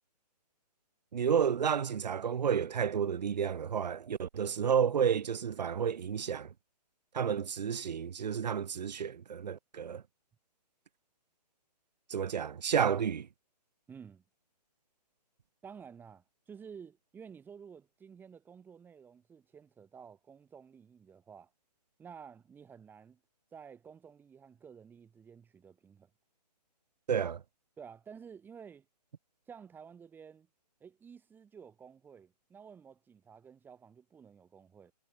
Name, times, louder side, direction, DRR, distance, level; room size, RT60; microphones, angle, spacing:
voice 1, 1.1-6.5 7.1-10.0 12.1-13.3 27.1-27.4, right 7 dB, 80° right, 0.7 m, -31 dB
voice 2, 13.9-14.2 15.6-21.5 22.0-23.2 23.5-26.1 27.8-28.9 29.5-30.5 30.8-34.9, right 7 dB, 10° right, 3.5 m, -52 dB
hypercardioid pair, 150°, 21 cm